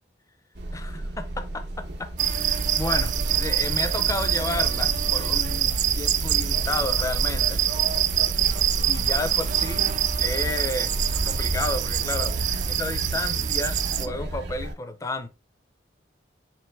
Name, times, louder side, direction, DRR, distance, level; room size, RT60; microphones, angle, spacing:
sound 1, 0.6-14.7, right 1 dB, 65° right, 0.7 m, -33 dB
voice 1, 0.7-7.6 8.9-9.8 10.2-12.3 12.7-15.3, left 2 dB, 15° left, 0.5 m, -32 dB
sound 2, 2.2-14.1, right 9 dB, 45° right, 0.3 m, -25 dB
4.4 x 3.0 x 3.2 m
head